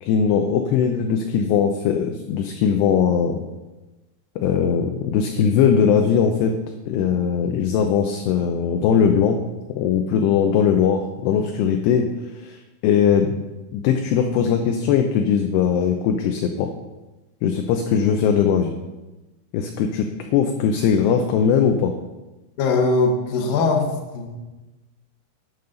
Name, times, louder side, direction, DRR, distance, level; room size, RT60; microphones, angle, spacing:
voice 1, 0.0-3.4 4.4-6.5 6.9-12.1 12.4-13.4 13.7-16.7 17.4-18.7 19.5-20.1 20.3-21.9, left 7 dB, 80° left, 4 dB, 2.7 m, -20 dB
voice 2, 22.6-24.4, left 3 dB, 60° left, 2 dB, 2.7 m, -21 dB
12.5 x 9.4 x 4.0 m, 1.1 s
omnidirectional pair, 5.1 m